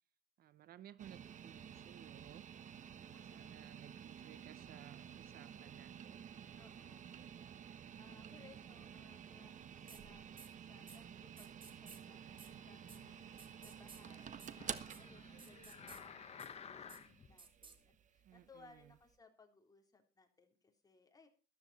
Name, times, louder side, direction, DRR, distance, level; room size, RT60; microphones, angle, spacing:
voice 1, 0.4-2.5 3.0-6.4 18.2-18.9, right 12 dB, 65° right, 0.8 m, -59 dB
sound 1, 1.0-19.1, right 8 dB, 45° right, 1.3 m, -52 dB
voice 2, 3.1-4.3 6.6-7.3 8.0-17.0 17.2-21.3, left 4 dB, 20° left, 3.4 m, -66 dB
sound 2, 9.9-10.0 10.4-10.5 10.9-11.0 11.4-12.0 12.4-12.5 12.9-13.0 13.4-14.0 14.4-14.5 14.8-15.0 15.4-16.0 16.4-16.5 16.9-17.0 17.4-17.8, right 5 dB, 30° right, 2.6 m, -56 dB
sound 3, 12.7-17.3 17.9-18.0, left 7 dB, 40° left, 1.2 m, -55 dB
13.5 x 13.0 x 4.2 m
cardioid pair, 110°, 17 cm